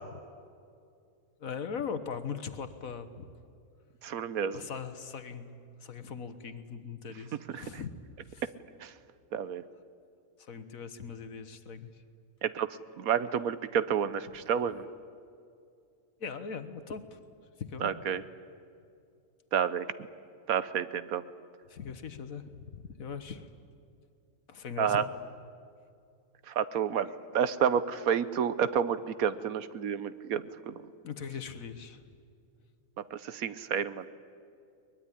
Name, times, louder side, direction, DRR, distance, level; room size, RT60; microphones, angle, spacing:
voice 1, 1.4-3.2 4.5-7.9 8.3-8.4 10.4-11.9 16.2-17.2 17.6-17.9 21.7-23.4 24.5-25.1 31.0-32.0, left 6 dB, 60° left, 10 dB, 1.6 m, -40 dB
voice 2, 4.0-4.6 7.5-7.6 8.8-8.9 9.3-9.6 12.4-12.7 13.0-14.9 17.8-18.2 19.5-19.9 20.5-21.2 24.8-25.1 26.5-30.7 33.1-34.1, right 8 dB, 65° right, 14 dB, 1.2 m, -30 dB
22.5 x 21.0 x 10.0 m, 2.4 s
omnidirectional pair, 1.7 m